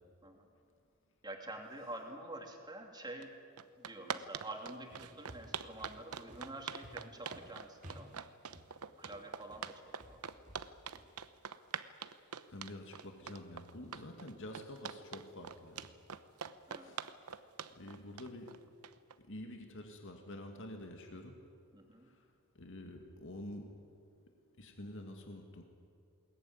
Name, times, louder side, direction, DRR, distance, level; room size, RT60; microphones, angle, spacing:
voice 1, 1.2-3.3 3.8-8.2 9.0-10.2 16.7-16.9 21.7-22.1, right 1 dB, 20° right, 3 dB, 2.8 m, -48 dB
sound 1, 3.2-3.3 3.6-19.1, right 7 dB, 80° right, 0.9 m, -44 dB
sound 2, 4.9-11.1, equal, 35° right, 2.2 m, -55 dB
voice 2, 12.5-15.9 16.8-17.0 17.8-18.6 19.3-21.4 22.1-22.2 22.6-23.7 24.6-25.6, left 1 dB, 60° left, 3 dB, 2.2 m, -48 dB
21.0 x 19.5 x 9.5 m, 2.3 s
head